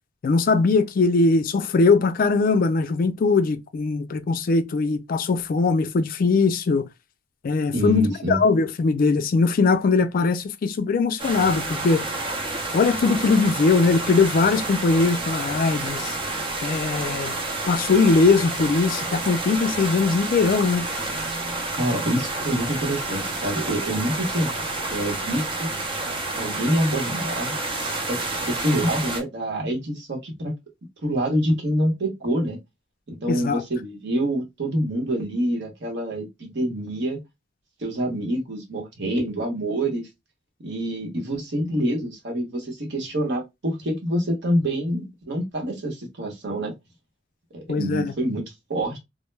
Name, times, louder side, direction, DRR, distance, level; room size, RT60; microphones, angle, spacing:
voice 1, 0.2-6.9 7.4-12.0 12.7-16.2 16.6-17.3 17.7-20.9 33.3-33.6 47.7-48.1, left 4 dB, 50° left, 0.3 m, -21 dB
voice 2, 7.7-8.4 21.8-25.7 26.3-27.6 28.1-30.5 31.0-32.6 33.1-37.2 37.8-40.1 40.6-46.7 47.5-49.0, right 1 dB, 65° right, 0.9 m, -26 dB
sound 1, 11.2-29.2, right 2 dB, 30° right, 0.5 m, -29 dB
2.2 x 2.0 x 3.1 m
head